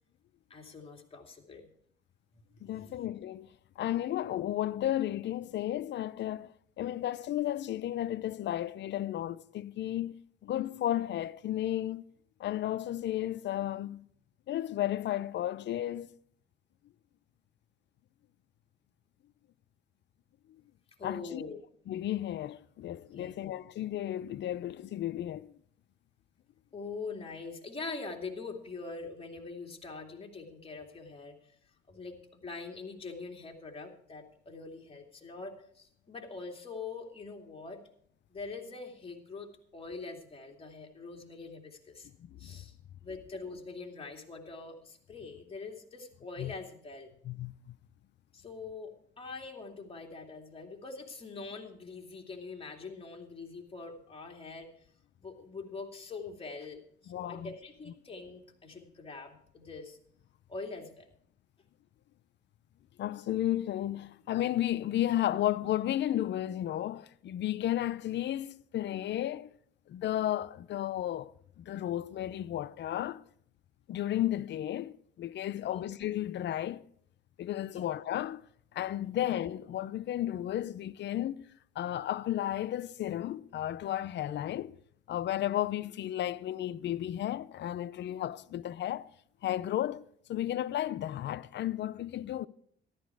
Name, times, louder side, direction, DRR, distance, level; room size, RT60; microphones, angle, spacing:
voice 1, 0.5-1.7 2.5-3.1 21.0-21.6 23.1-23.6 26.7-31.4 31.9-37.8 38.3-42.1 42.4-42.7 43.0-47.1 48.3-54.7 55.2-60.0 60.5-61.1 75.6-75.8 77.7-77.9 79.0-79.2, left 4 dB, 30° left, 2.6 m, -44 dB
voice 2, 2.6-3.5 3.8-6.5 6.8-10.2 10.4-12.0 12.4-14.0 14.5-16.1 21.0-21.4 21.9-25.5 42.3-42.6 46.4-46.5 47.2-47.8 57.1-57.5 63.0-69.5 69.9-73.2 73.9-76.8 77.4-78.4 78.7-81.4 81.8-84.8 85.1-89.1 89.4-92.5, left 12 dB, 65° left, 0.5 m, -33 dB
13.5 x 12.0 x 4.7 m
cardioid pair, 90°, 20 cm